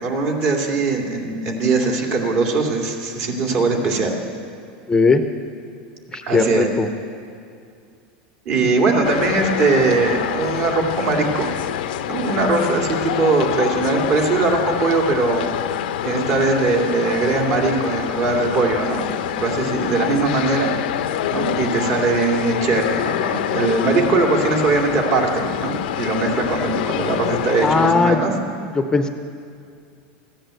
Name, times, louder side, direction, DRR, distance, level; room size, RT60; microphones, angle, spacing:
voice 1, 0.0-4.1 6.3-6.7 8.5-11.5 12.1-15.5 16.0-19.0 19.4-20.7 21.1-28.3, right 3 dB, 50° right, 1 dB, 2.6 m, -20 dB
voice 2, 4.9-5.2 6.1-6.9 27.6-28.2 28.8-29.1, left 4 dB, 15° left, 7 dB, 0.6 m, -18 dB
sound 1, 9.0-27.9, left 11 dB, 80° left, 0.6 m, -26 dB
14.5 x 10.0 x 7.8 m, 2.3 s
supercardioid pair, 130°, 5 cm